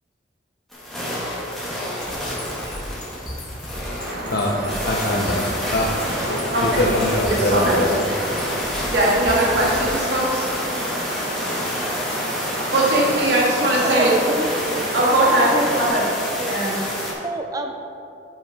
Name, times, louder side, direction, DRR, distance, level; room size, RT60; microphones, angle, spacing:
sound 1, 0.7-17.1, equal, ahead, 2.2 m, -29 dB
sound 2, 2.0-10.0, left 1 dB, 25° left, 1.6 m, -35 dB
sound 3, 4.0-15.9, equal, 55° right, 1.5 m, -31 dB
voice 1, 4.8-5.4 5.7-5.9 6.3-7.9, left 1 dB, 60° left, -3 dB, 0.9 m, -23 dB
voice 2, 6.5-6.9 7.2-7.8 8.9-10.5 12.7-14.1 14.9-16.0 16.5-16.8, right 1 dB, 80° right, -5 dB, 2.1 m, -20 dB
voice 3, 13.6-14.5 15.4-15.8 16.4-16.7 17.2-17.7, right 1 dB, 20° right, 4 dB, 0.5 m, -28 dB
7.8 x 5.6 x 6.0 m, 2.6 s
head